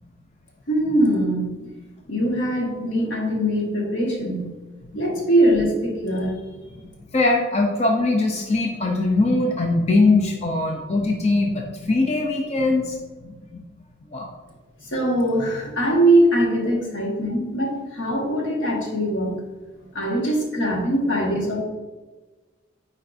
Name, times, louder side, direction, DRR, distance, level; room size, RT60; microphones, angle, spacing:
voice 1, 0.7-1.6 2.1-4.5 4.9-6.4 14.9-19.3 19.9-21.6, right 1 dB, 80° left, -2 dB, 1.6 m, -22 dB
voice 2, 7.1-13.0 13.2-13.3 14.1-14.3, left 2 dB, 35° left, 1 dB, 0.5 m, -21 dB
8.9 x 4.4 x 2.6 m, 1.2 s
head